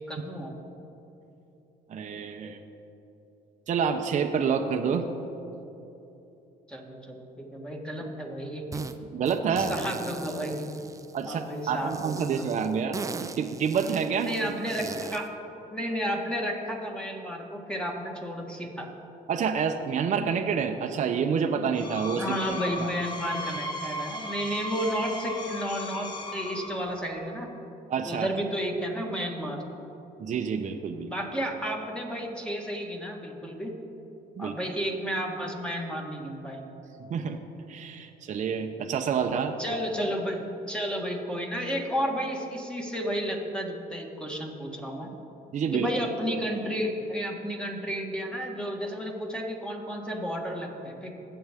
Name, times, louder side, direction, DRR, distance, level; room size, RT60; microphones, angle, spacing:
voice 1, 0.1-0.5 6.7-8.9 9.6-10.7 11.3-12.3 14.2-15.3 15.7-18.9 22.2-27.5 28.1-29.6 31.1-33.8 34.4-36.6 39.6-45.1 45.7-51.1, equal, 5° left, 0 dB, 1.6 m, -32 dB
voice 2, 1.9-2.6 3.7-5.1 9.1-9.8 11.1-14.5 19.3-22.9 27.9-28.3 30.2-31.1 34.4-34.6 37.1-37.4 37.7-39.6 45.5-45.9, right 6 dB, 45° right, 4 dB, 0.7 m, -28 dB
sound 1, 8.7-9.0 9.3-11.4 11.9-15.3, right 4 dB, 20° right, 0.5 m, -39 dB
Screech, 21.6-27.1, left 1 dB, 25° left, 1.3 m, -36 dB
20.0 x 7.9 x 3.6 m, 3.0 s
cardioid pair, 110°, 17 cm